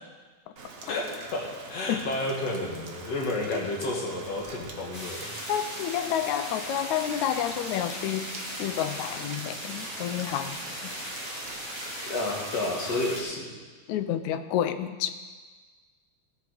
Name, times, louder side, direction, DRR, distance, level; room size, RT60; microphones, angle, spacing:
Rain, 0.6-12.9, right 3 dB, 85° right, 0.7 m, -44 dB
voice 1, 0.9-5.4 12.1-13.5, left 2 dB, 60° left, -1 dB, 2.9 m, -31 dB
sound 1, 4.9-13.2, equal, 10° left, 2.2 m, -38 dB
voice 2, 5.5-8.3 8.6-11.1 13.9-15.1, left 10 dB, 80° left, 11 dB, 2.0 m, -30 dB
17.0 x 8.3 x 5.1 m, 1.4 s
omnidirectional pair, 3.4 m